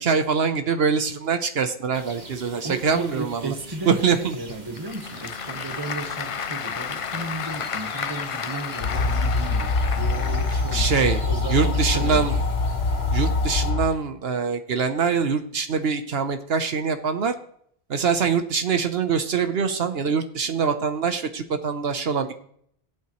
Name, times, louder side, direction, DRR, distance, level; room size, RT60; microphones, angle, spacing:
voice 1, 0.0-3.5 3.9-4.4 10.7-11.2 11.5-12.3 13.1-17.4 17.9-22.3, right 5 dB, 70° right, 8 dB, 1.1 m, -24 dB
sound 1, 1.9-13.7, right 1 dB, 45° right, 1.6 m, -43 dB
voice 2, 2.6-10.9 11.2-12.4, right 3 dB, 20° right, 6 dB, 1.2 m, -34 dB
Applause / Crowd, 4.5-11.2, left 7 dB, 50° left, 0.4 m, -33 dB
sound 2, 8.8-13.9, left 3 dB, 75° left, 1.2 m, -24 dB
18.5 x 8.6 x 3.1 m, 0.66 s
omnidirectional pair, 1.1 m